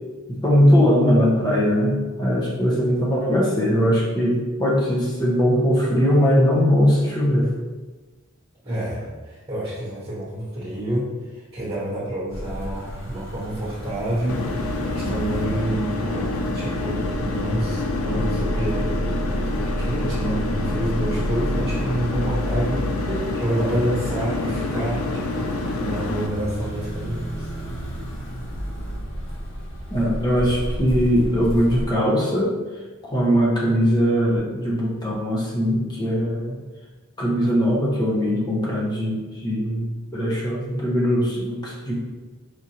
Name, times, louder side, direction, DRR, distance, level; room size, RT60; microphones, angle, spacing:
voice 1, 0.3-7.5 23.1-23.3 29.9-32.5 33.0-36.6 37.2-41.9, equal, 20° left, -5 dB, 0.7 m, -20 dB
voice 2, 8.6-18.9 19.6-27.5, right 1 dB, 25° right, -8 dB, 1.3 m, -28 dB
sound 1, 12.3-31.8, equal, 60° left, 0.9 m, -31 dB
sound 2, 14.3-26.3, left 2 dB, 80° left, 0.4 m, -27 dB
4.9 x 2.6 x 2.8 m, 1.3 s
head